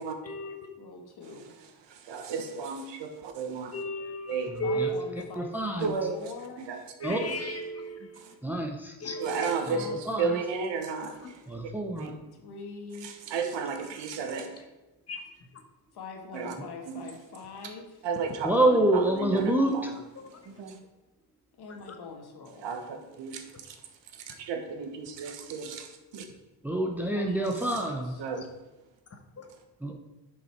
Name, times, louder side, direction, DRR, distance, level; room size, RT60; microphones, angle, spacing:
voice 1, 0.2-0.6 3.7-5.0 7.0-8.3 9.0-9.6 15.1-15.2 29.4-29.5, equal, 35° left, 4 dB, 1.2 m, -34 dB
voice 2, 0.7-1.5 4.6-6.7 9.2-9.4 9.7-10.0 10.3-10.4 12.3-13.1 15.9-17.9 21.5-22.7 27.1-28.2, left 4 dB, 60° left, 3 dB, 1.7 m, -43 dB
voice 3, 1.6-3.8 4.3-4.5 5.8-7.5 8.2-8.3 9.2-11.7 12.0-12.1 13.0-14.5 16.3-16.5 16.8-17.1 18.0-20.0 20.4-20.8 22.6-23.8 24.1-26.3 28.2-28.5, right 5 dB, 75° right, 5 dB, 1.3 m, -34 dB
voice 4, 5.4-5.9 7.0-7.2 8.4-8.9 10.1-10.2 11.5-12.1 18.4-19.9 26.6-28.4 29.8-29.9, right 1 dB, 5° right, 2 dB, 0.7 m, -27 dB
9.8 x 5.4 x 4.5 m, 1.1 s
cardioid pair, 125°, 44 cm